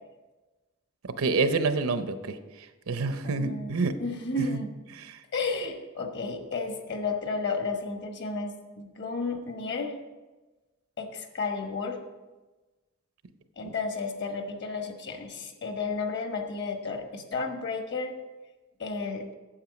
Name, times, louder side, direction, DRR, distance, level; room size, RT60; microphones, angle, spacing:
voice 1, 1.2-2.4 2.9-3.9 4.4-4.6 5.0-5.2 13.6-13.7, right 3 dB, 85° right, 10 dB, 0.7 m, -27 dB
voice 2, 3.2-3.7 4.0-4.7 5.3-9.9 11.0-12.0 13.6-18.1 18.8-19.2, left 3 dB, 55° left, 4 dB, 1.2 m, -32 dB
8.8 x 7.8 x 5.2 m, 1.2 s
head